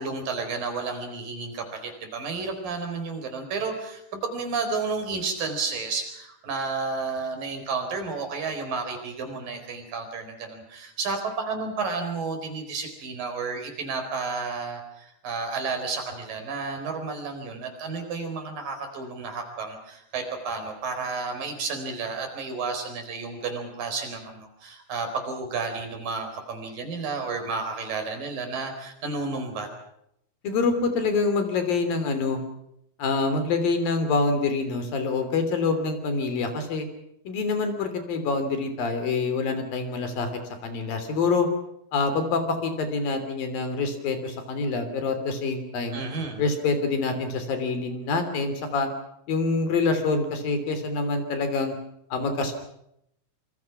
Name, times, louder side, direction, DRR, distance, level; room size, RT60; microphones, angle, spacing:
voice 1, 0.0-29.7 45.9-46.4, right 4 dB, 75° right, 5 dB, 6.0 m, -31 dB
voice 2, 30.4-32.4 33.0-36.9 37.2-40.3 40.6-41.5 41.9-46.0 46.4-48.9 49.3-51.7 52.1-52.5, left 4 dB, 85° left, 8 dB, 5.0 m, -26 dB
26.5 x 25.0 x 6.0 m, 0.75 s
omnidirectional pair, 3.9 m